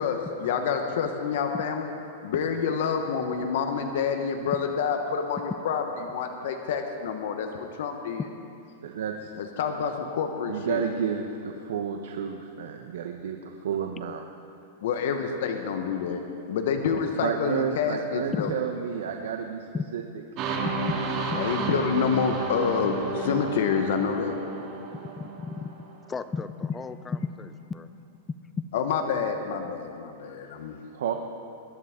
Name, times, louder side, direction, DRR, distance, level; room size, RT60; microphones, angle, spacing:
voice 1, 0.0-1.9 2.2-8.3 9.4-10.8 14.8-16.2 16.5-18.5 21.3-24.4 28.7-30.8, left 6 dB, 65° left, 5 dB, 1.1 m, -28 dB
voice 2, 8.8-9.3 10.5-14.2 17.2-19.7 19.9-20.0 30.9-31.1, right 7 dB, 80° right, 4 dB, 0.9 m, -31 dB
sound 1, 20.4-26.1, right 4 dB, 35° right, 2.0 m, -32 dB
voice 3, 25.2-25.7 26.1-27.9, left 5 dB, 15° left, 13 dB, 0.4 m, -33 dB
21.5 x 11.0 x 3.7 m, 2.6 s
supercardioid pair, 155°, 0 cm